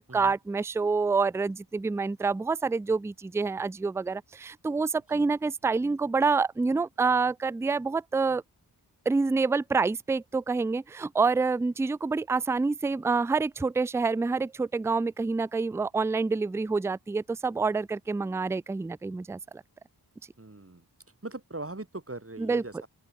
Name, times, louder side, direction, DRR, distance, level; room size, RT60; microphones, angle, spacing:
voice 1, 0.0-8.4 9.1-19.6 22.4-22.6, right 4 dB, 5° right, 0.3 m, -27 dB
voice 2, 20.4-20.8 21.2-22.9, right 2 dB, 30° right, 3.9 m, -40 dB
open air
wide cardioid pair, 65°, 42 cm